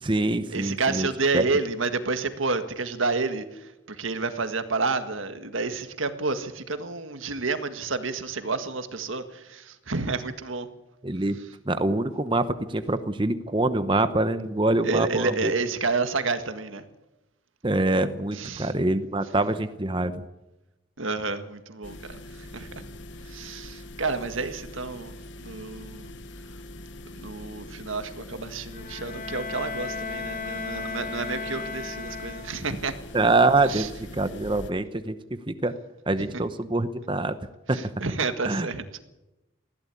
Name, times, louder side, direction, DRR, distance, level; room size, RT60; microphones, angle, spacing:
voice 1, 0.0-1.1 1.3-1.4 11.0-11.4 11.7-15.5 17.6-20.2 33.1-33.9 34.1-35.2 35.5-35.7 36.1-37.4 37.7-37.8 38.4-38.7, right 2 dB, 25° right, 11 dB, 0.9 m, -24 dB
voice 2, 0.5-10.7 14.8-16.8 18.3-18.7 21.0-22.8 23.2-25.1 25.4-26.2 27.2-32.9 33.6-33.9 36.3-36.4 37.7-39.0, right 3 dB, 75° right, 9 dB, 1.8 m, -30 dB
sound 1, 21.8-34.7, left 1 dB, 60° left, 1.1 m, -43 dB
Bowed string instrument, 28.7-32.8, left 4 dB, 40° left, 2.2 m, -35 dB
20.5 x 15.5 x 8.5 m, 0.97 s
head